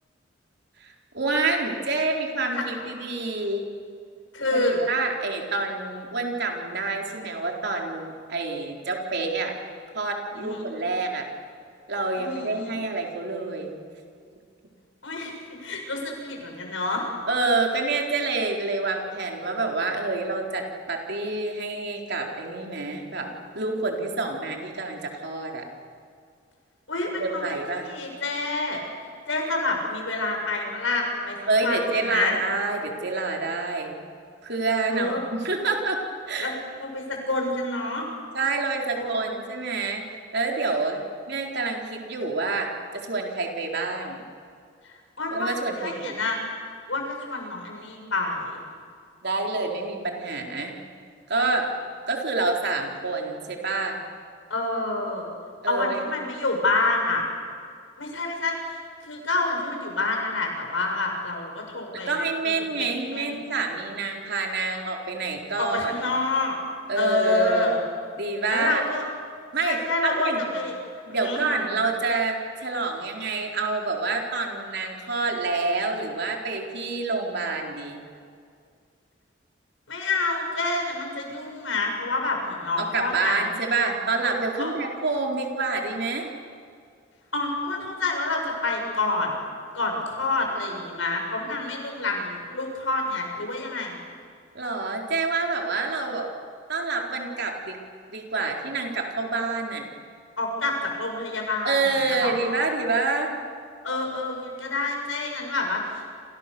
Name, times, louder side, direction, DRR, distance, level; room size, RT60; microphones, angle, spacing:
voice 1, 0.8-3.7 4.5-9.5 9.9-11.3 11.9-13.8 17.3-23.3 23.5-25.6 27.2-27.9 31.5-34.0 34.4-36.0 36.3-36.5 38.3-40.0 40.3-41.0 41.3-44.2 45.3-46.2 49.2-50.8 51.3-51.7 52.1-54.0 55.6-56.0 62.1-65.9 66.9-67.8 68.2-68.8 69.5-70.4 71.1-78.0 82.8-86.3 94.5-96.3 96.7-97.8 98.1-99.9 101.6-103.4, right 3 dB, 60° right, 1 dB, 4.1 m, -27 dB
voice 2, 4.3-4.8 10.4-10.6 12.2-12.8 15.0-15.3 15.6-17.1 26.9-27.4 27.7-28.8 29.3-31.4 31.6-31.8 32.1-32.4 34.9-35.2 36.4-38.1 39.0-39.3 44.8-46.4 46.9-48.6 54.5-55.3 55.7-57.2 58.0-58.8 59.0-62.1 62.4-63.3 65.6-66.6 66.9-67.8 68.5-69.0 69.6-70.7 71.1-71.4 79.9-83.5 84.6-84.8 87.3-89.4 89.7-94.0 100.4-101.8 102.0-102.6 103.8-106.0, left 2 dB, 80° left, 2 dB, 7.2 m, -28 dB
29.5 x 27.5 x 7.0 m, 2.2 s
head